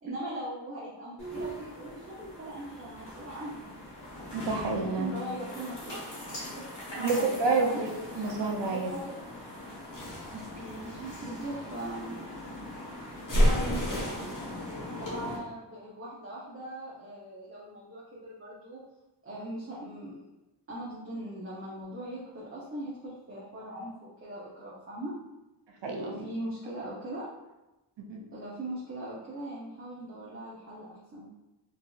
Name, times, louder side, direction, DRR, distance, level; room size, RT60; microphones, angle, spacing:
voice 1, 0.0-3.7 4.7-6.0 6.6-6.7 6.9-7.8 8.6-9.2 10.5-12.2 13.3-14.3 14.9-18.8 19.2-20.2 20.7-25.1 26.0-27.3 28.3-31.3, right 1 dB, 30° right, -7 dB, 0.7 m, -40 dB
sound 1, 1.2-15.4, left 1 dB, 80° left, 1.3 m, -42 dB
voice 2, 4.3-5.1 7.0-8.9 10.3-10.4 25.8-26.2 28.1-28.2, right 3 dB, 80° right, 1 dB, 0.6 m, -29 dB
sound 2, 9.9-11.8 13.3-14.6, equal, 50° left, 0.9 m, -28 dB
4.0 x 2.7 x 2.3 m, 1.0 s
wide cardioid pair, 95°, 43 cm